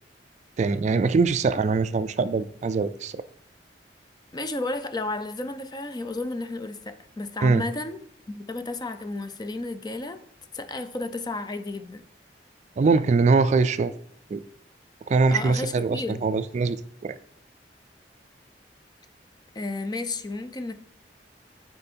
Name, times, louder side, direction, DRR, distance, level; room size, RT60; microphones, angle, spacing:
voice 1, 0.6-3.2 7.4-7.6 12.8-13.9 14.3-14.4 15.1-16.8 17.0-17.2, right 4 dB, 40° right, 0.3 m, -22 dB
voice 2, 4.3-8.0 8.3-10.2 10.5-12.0 15.3-16.2 19.5-20.7, left 2 dB, 25° left, 0.5 m, -32 dB
8.6 x 4.5 x 4.4 m
head